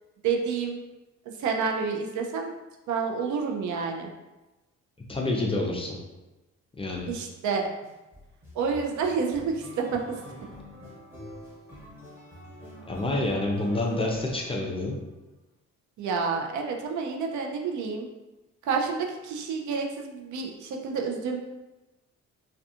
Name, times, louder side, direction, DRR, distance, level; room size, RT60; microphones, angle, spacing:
voice 1, 0.2-0.8 1.4-2.5 2.9-4.1 7.1-7.7 8.5-10.2 16.0-18.1 18.6-21.4, right 5 dB, 70° right, 2 dB, 0.5 m, -29 dB
voice 2, 5.1-6.0 6.8-7.1 12.9-15.0, left 2 dB, 20° left, -1 dB, 0.4 m, -28 dB
sound 1, 6.9-7.3 7.8-15.0, equal, 10° right, 1.0 m, -46 dB
2.4 x 2.3 x 2.7 m, 1.1 s
cardioid pair, 90°, 30 cm